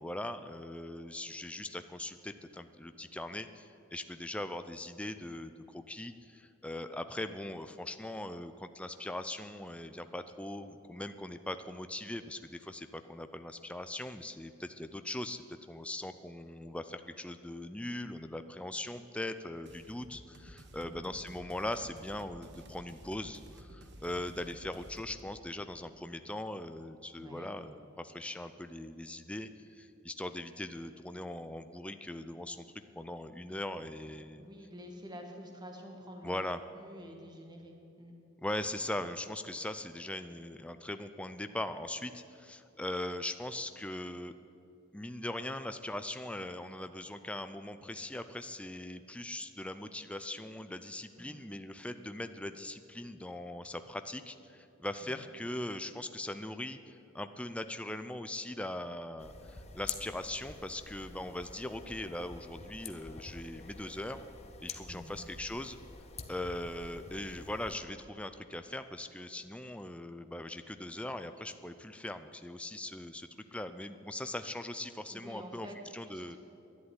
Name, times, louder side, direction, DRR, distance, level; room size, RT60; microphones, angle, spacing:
voice 1, 0.0-32.7 32.9-34.5 36.2-36.6 38.4-44.3 44.9-64.2 64.6-65.8 66.3-75.7 75.9-76.4, left 1 dB, 5° left, 9 dB, 0.4 m, -40 dB
sound 1, 19.6-25.2, right 1 dB, 55° right, 1.2 m, -53 dB
voice 2, 20.8-21.1 27.1-27.5 34.4-38.1 51.2-51.6 55.0-55.4 64.9-65.2 75.1-76.4, equal, 20° right, 2 dB, 1.6 m, -49 dB
sound 2, 59.2-67.8, left 5 dB, 30° left, 0.8 m, -47 dB
11.5 x 10.5 x 9.6 m, 2.7 s
head